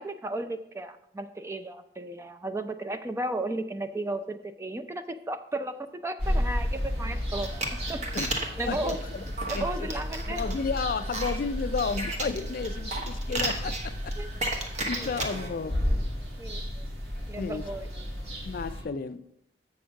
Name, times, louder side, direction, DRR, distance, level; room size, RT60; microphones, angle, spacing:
voice 1, 0.0-5.8 6.0-7.5 7.9-8.0 8.6-9.0 9.5-10.4 14.2-14.3 15.0-15.2 16.4-16.9 17.3-17.9, right 2 dB, 15° right, 0.4 m, -34 dB
sound 1, 6.2-18.8, equal, 65° right, 2.3 m, -33 dB
sound 2, 7.3-15.5, right 2 dB, 40° right, 1.1 m, -35 dB
voice 2, 8.7-9.2 9.5-9.9 10.3-14.1 14.6-15.8 17.4-17.6 18.4-19.2, left 5 dB, 55° left, 0.4 m, -32 dB
7.1 x 6.4 x 4.6 m
head